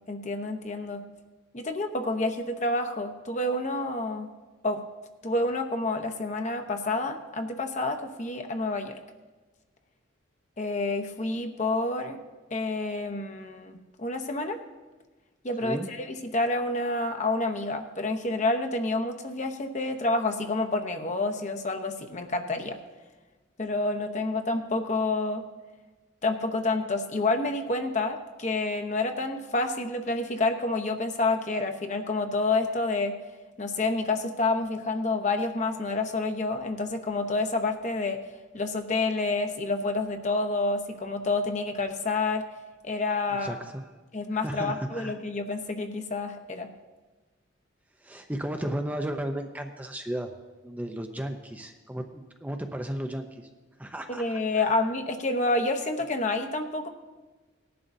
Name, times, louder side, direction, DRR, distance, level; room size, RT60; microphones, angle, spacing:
voice 1, 0.1-1.1 1.5-4.3 4.6-4.8 5.2-9.0 10.6-12.2 12.5-14.6 15.4-22.8 23.6-25.4 26.2-33.2 33.6-38.2 38.5-42.5 42.8-43.6 44.1-46.7 54.1-56.9, left 2 dB, 35° left, 5 dB, 0.9 m, -28 dB
voice 2, 43.4-43.8 44.3-45.2 48.0-50.3 50.6-53.5 53.8-54.7, right 1 dB, 10° right, 5 dB, 0.6 m, -34 dB
19.0 x 11.0 x 2.7 m, 1.2 s
head